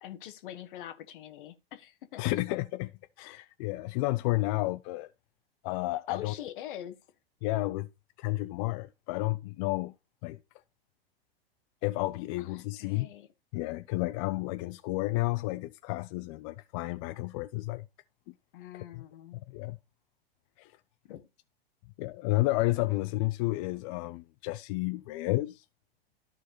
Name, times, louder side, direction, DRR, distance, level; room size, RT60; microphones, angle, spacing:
voice 1, 0.0-2.4 6.1-7.0 12.4-13.3 18.5-19.4 21.0-21.2, left 11 dB, 55° left, 1.3 m, -44 dB
voice 2, 2.2-2.9 3.2-5.1 5.6-6.3 7.4-7.9 8.2-9.9 10.2-10.4 11.8-13.1 13.5-17.9 18.3-18.4 18.9-19.0 19.3-19.8 20.6-20.7 22.0-25.6, left 19 dB, 35° left, 0.4 m, -31 dB
13.0 x 4.6 x 2.9 m
hypercardioid pair, 100°, 30 cm